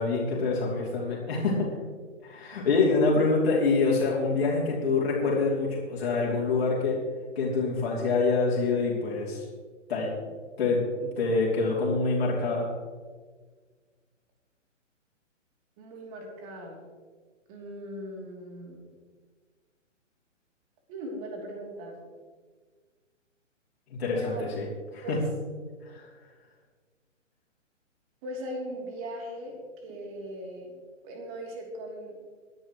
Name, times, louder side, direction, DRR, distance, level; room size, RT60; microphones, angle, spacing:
voice 1, 0.0-1.6 2.2-7.0 7.3-9.5 9.9-10.1 10.6-12.7 23.9-24.6 24.9-25.2 25.8-26.1, left 3 dB, 55° left, -5 dB, 3.5 m, -26 dB
voice 2, 15.8-16.8 17.5-18.8 20.9-22.0 24.1-24.4 25.0-25.2 28.2-30.7 31.0-32.2, equal, 30° right, 0 dB, 3.1 m, -39 dB
21.0 x 9.9 x 3.2 m, 1.5 s
figure-of-eight pair, 135°, 38 cm